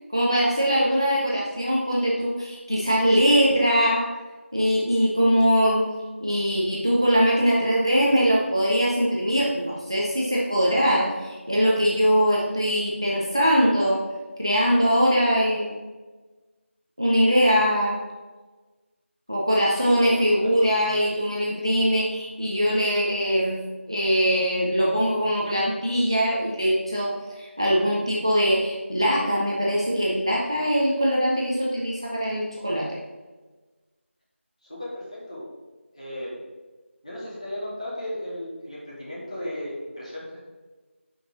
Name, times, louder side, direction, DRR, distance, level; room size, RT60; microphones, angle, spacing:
voice 1, 0.1-4.1 4.5-14.0 14.4-15.7 17.0-18.0 19.3-23.6 23.9-33.0, equal, 25° right, -4 dB, 0.6 m, -22 dB
voice 2, 34.7-35.4 35.9-36.3 37.0-40.4, left 1 dB, 30° left, -7 dB, 2.1 m, -35 dB
5.7 x 5.3 x 5.2 m, 1.3 s
figure-of-eight pair, 180°, 7 cm